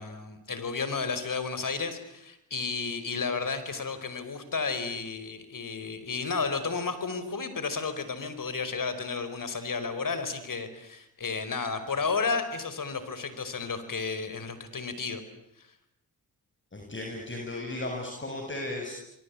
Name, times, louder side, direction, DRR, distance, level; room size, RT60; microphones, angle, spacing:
voice 1, 0.0-15.2, left 4 dB, 55° left, 11 dB, 5.1 m, -32 dB
voice 2, 16.7-18.9, left 2 dB, 30° left, 1 dB, 7.2 m, -35 dB
27.5 x 23.5 x 8.6 m, 0.81 s
cardioid pair, 60°, 40 cm